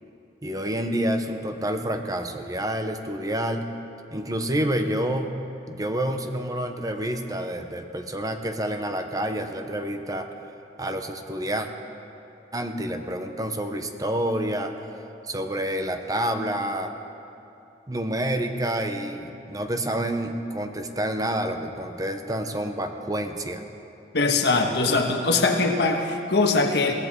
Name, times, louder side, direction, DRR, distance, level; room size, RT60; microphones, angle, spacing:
voice 1, 0.4-3.7 4.1-10.3 10.8-11.7 12.5-14.7 15.2-16.9 17.9-23.6, right 1 dB, 20° right, 6 dB, 0.8 m, -28 dB
voice 2, 24.1-26.9, left 3 dB, 65° left, 3 dB, 1.3 m, -22 dB
22.0 x 16.0 x 3.7 m, 2.7 s
head